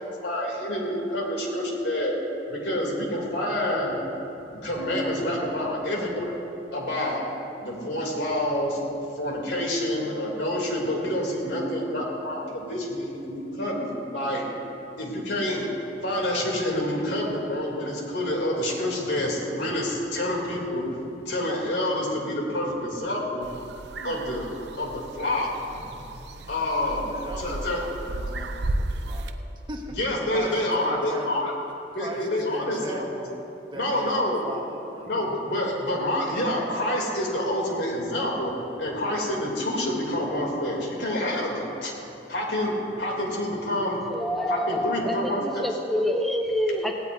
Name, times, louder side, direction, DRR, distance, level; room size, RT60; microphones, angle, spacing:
voice 1, 0.2-2.1 2.5-4.0 4.5-6.4 6.7-7.2 7.6-8.8 9.1-14.5 15.0-15.7 16.0-20.9 21.2-23.5 24.0-24.5 24.8-26.0 26.5-27.9 29.9-31.5 31.9-33.0 33.7-34.4 35.0-38.5 38.8-42.0 42.3-44.1 44.5-45.6, left 1 dB, 80° left, -2 dB, 3.1 m, -27 dB
sound 1, 23.4-29.3, right 2 dB, 70° right, 0.7 m, -34 dB
voice 2, 26.8-29.3 29.7-30.0 30.3-31.5 32.0-33.5 33.7-35.2, right 1 dB, 25° right, -1 dB, 1.5 m, -39 dB
voice 3, 44.0-46.9, equal, ahead, 1 dB, 0.7 m, -27 dB
17.5 x 17.0 x 2.7 m, 2.8 s
head